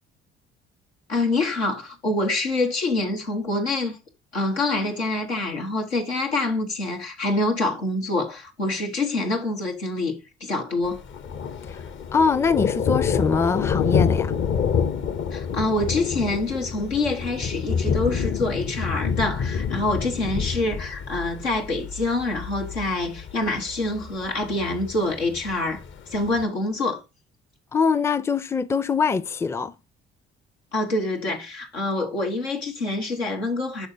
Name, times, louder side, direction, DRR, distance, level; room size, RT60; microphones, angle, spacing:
voice 1, 1.1-4.0 4.3-11.0 15.3-25.8 26.1-27.0 30.7-33.9, left 2 dB, 90° left, 1.2 m, -26 dB
Thunder, 10.9-26.4, left 6 dB, 40° left, 0.7 m, -27 dB
voice 2, 12.1-14.3 27.7-29.7, left 5 dB, 10° left, 0.4 m, -23 dB
11.5 x 3.9 x 2.7 m
figure-of-eight pair, 50°, 32 cm